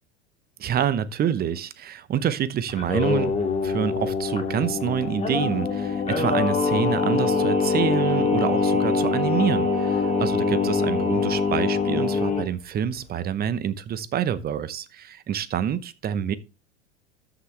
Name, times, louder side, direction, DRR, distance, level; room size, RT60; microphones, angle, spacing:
voice 1, 0.6-16.3, right 9 dB, 25° right, 0.9 m, -27 dB
Singing, 2.7-12.4, left 4 dB, 20° left, 2.5 m, -24 dB
13.0 x 6.0 x 3.3 m
hypercardioid pair, 90°, 35 cm